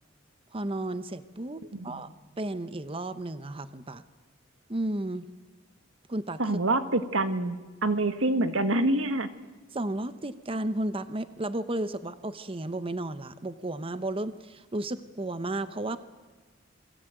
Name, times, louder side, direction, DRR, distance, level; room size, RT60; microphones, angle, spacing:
voice 1, 0.5-4.0 4.7-5.3 6.1-6.4 9.7-16.0, right 1 dB, 30° right, 12 dB, 0.9 m, -33 dB
voice 2, 1.7-2.0 6.4-7.6 7.8-9.3, right 2 dB, 85° right, 10 dB, 1.8 m, -26 dB
28.5 x 22.0 x 9.2 m, 1.3 s
head